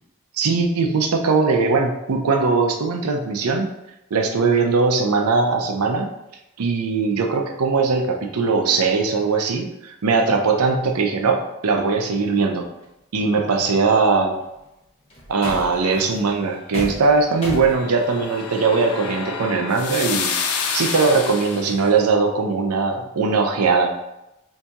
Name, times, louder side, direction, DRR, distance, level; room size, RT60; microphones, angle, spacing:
voice 1, 0.3-3.7 4.1-6.1 6.6-12.7 13.1-14.4 15.3-20.3 20.7-23.9, right 4 dB, 90° right, 4 dB, 0.5 m, -20 dB
sound 1, 12.8-12.9 14.4-14.6 15.1-17.8, equal, 25° left, 0.8 m, -34 dB
sound 2, 17.2-21.9, left 5 dB, 90° left, 0.4 m, -29 dB
4.0 x 2.7 x 2.3 m, 0.90 s
head